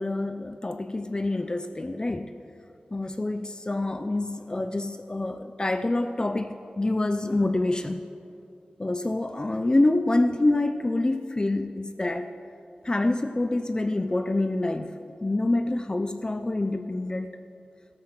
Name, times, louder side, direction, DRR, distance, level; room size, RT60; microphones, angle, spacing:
voice 1, 0.0-2.3 2.9-8.0 8.8-12.3 12.8-14.9 15.2-17.3, left 2 dB, 30° left, 9 dB, 0.5 m, -26 dB
14.5 x 12.5 x 6.0 m, 2.5 s
wide cardioid pair, 95°, 3 cm